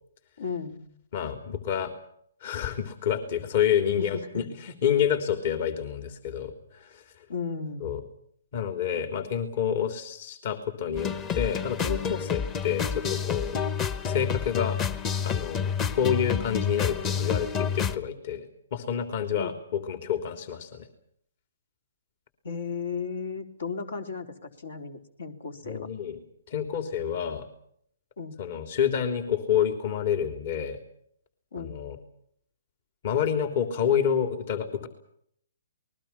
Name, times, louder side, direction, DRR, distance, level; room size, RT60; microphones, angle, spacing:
voice 1, 0.4-0.8 4.0-4.4 7.3-8.0 19.4-19.5 22.4-25.9 28.2-28.4 31.5-31.7, left 5 dB, 75° left, 7 dB, 3.9 m, -35 dB
voice 2, 1.1-1.9 2.4-7.2 7.8-8.0 8.5-13.6 14.0-14.8 15.2-18.5 18.7-20.9 25.6-26.2 26.5-27.5 28.4-30.8 31.6-32.0 33.0-34.9, left 8 dB, 50° left, 8 dB, 3.2 m, -28 dB
sound 1, 11.0-18.0, left 7 dB, 20° left, 1.2 m, -29 dB
28.5 x 21.5 x 5.9 m, 0.67 s
hypercardioid pair, 140°, 0 cm